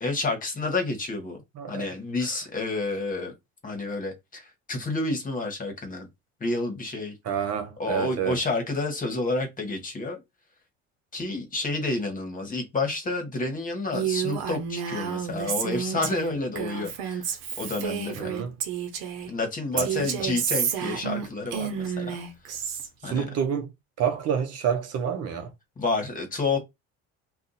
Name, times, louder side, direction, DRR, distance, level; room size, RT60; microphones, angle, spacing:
voice 1, 0.0-1.4 1.7-3.3 3.6-6.1 6.4-7.1 7.8-10.2 11.1-18.3 19.3-22.1 23.0-23.3 25.8-26.6, left 3 dB, 30° left, 1.2 m, -29 dB
voice 2, 1.5-1.9 2.2-2.3 7.2-8.4 18.2-18.5 19.7-19.9 23.0-23.7 24.0-25.5, right 7 dB, 55° right, 0.8 m, -28 dB
Female speech woman speaking, 13.9-19.3 19.8-22.9, right 8 dB, 85° right, 0.8 m, -30 dB
2.6 x 2.3 x 4.0 m
supercardioid pair, 90°, 29 cm